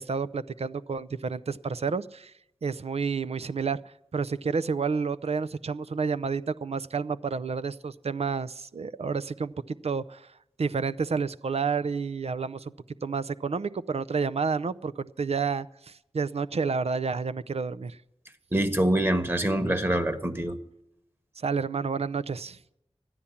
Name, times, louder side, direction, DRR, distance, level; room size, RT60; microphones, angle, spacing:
voice 1, 0.0-2.3 2.6-3.8 4.1-10.3 10.6-12.7 13.0-18.0 21.4-22.6, right 5 dB, 70° right, 0.5 m, -30 dB
voice 2, 18.5-20.6, right 1 dB, 20° right, 1.4 m, -25 dB
13.5 x 10.0 x 7.0 m
wide cardioid pair, 45°, 11 cm